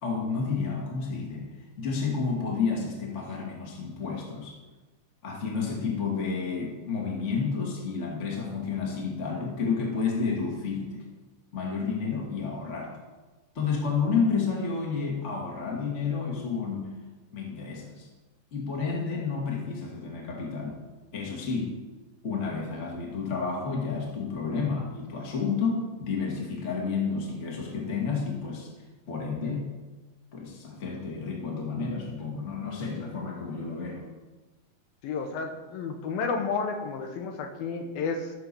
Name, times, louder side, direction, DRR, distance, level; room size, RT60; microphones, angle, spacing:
voice 1, 0.0-4.6 5.2-11.0 11.5-13.0 13.5-16.9 17.3-18.1 18.5-20.8 21.1-21.8 22.2-28.7 29.1-29.7 30.3-34.0, left 5 dB, 25° left, -1 dB, 1.9 m, -30 dB
voice 2, 35.0-38.3, left 4 dB, 75° left, 5 dB, 2.8 m, -31 dB
14.5 x 6.5 x 7.0 m, 1.2 s
omnidirectional pair, 4.4 m